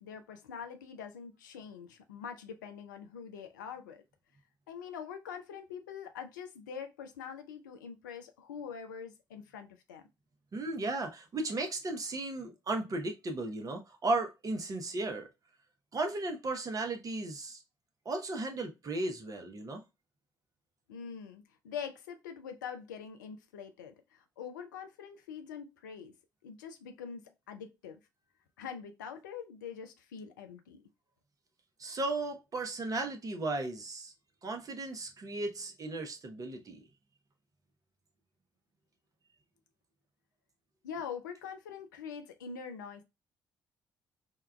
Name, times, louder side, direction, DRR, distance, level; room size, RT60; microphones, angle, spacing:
voice 1, 0.0-4.0 4.7-10.0 20.9-26.2 26.4-28.0 28.6-30.8 40.8-43.0, left 7 dB, 75° left, 0.4 m, -44 dB
voice 2, 10.5-15.3 15.9-17.6 18.0-19.8 31.8-34.1 34.4-36.8, right 2 dB, 35° right, 0.8 m, -35 dB
4.5 x 2.3 x 2.2 m
figure-of-eight pair, 45°, 10 cm